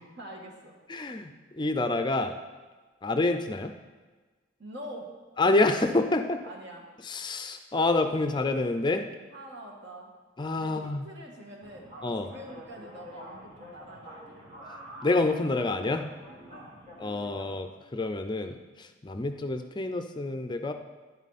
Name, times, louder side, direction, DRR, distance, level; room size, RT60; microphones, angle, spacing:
voice 1, 0.2-0.8 4.6-5.1 6.4-6.9 9.3-10.1 10.6-11.9 12.2-14.5 16.5-16.7, equal, 60° right, 0 dB, 2.1 m, -44 dB
voice 2, 0.9-2.3 3.0-3.7 5.4-6.4 7.0-9.1 10.4-11.0 12.0-12.3 15.0-16.1 17.0-20.7, left 2 dB, 25° left, 7 dB, 0.5 m, -27 dB
sound 1, 11.6-17.6, equal, 35° right, 2.5 m, -47 dB
11.0 x 10.5 x 4.2 m, 1.3 s
head